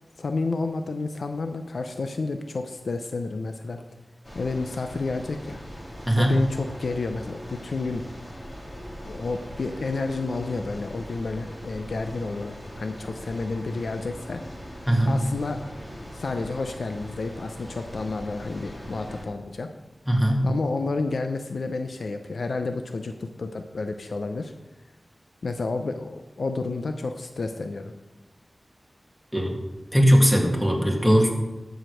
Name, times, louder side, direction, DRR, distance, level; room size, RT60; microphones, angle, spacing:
voice 1, 0.2-3.8 4.3-5.6 6.2-8.0 9.0-14.4 15.1-15.6 16.1-19.7 20.4-24.5 25.4-27.9, left 3 dB, 85° left, 6 dB, 0.6 m, -30 dB
sound 1, 4.2-19.3, equal, 25° left, 2.9 m, -41 dB
voice 2, 6.1-6.4 14.9-15.3 20.1-20.5 29.3-29.6 29.9-31.3, equal, 5° left, 0 dB, 2.2 m, -20 dB
13.5 x 5.1 x 6.3 m, 1.1 s
wide cardioid pair, 70°, 0 cm